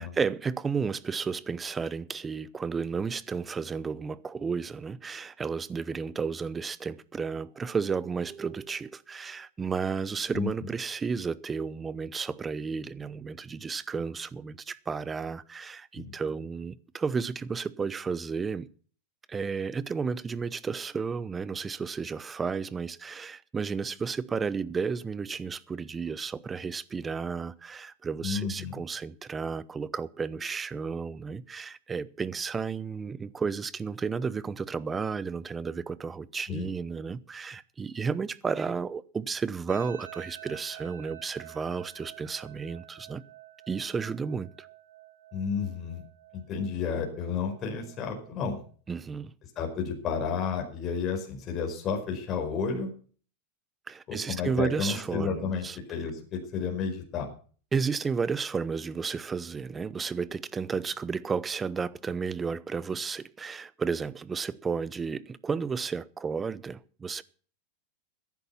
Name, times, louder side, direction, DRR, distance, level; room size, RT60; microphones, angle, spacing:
voice 1, 0.0-18.7 19.3-43.2 43.7-44.7 48.9-49.3 53.9-55.8 57.7-67.2, right 5 dB, 15° right, 0.8 m, -32 dB
voice 2, 28.2-28.8 36.5-36.7 45.3-46.0 46.3-48.6 49.5-52.9 54.1-57.3, left 6 dB, 35° left, 5.0 m, -31 dB
sound 1, 39.7-48.7, right 12 dB, 80° right, 4.9 m, -50 dB
14.5 x 11.0 x 5.7 m
supercardioid pair, 125°, 0 cm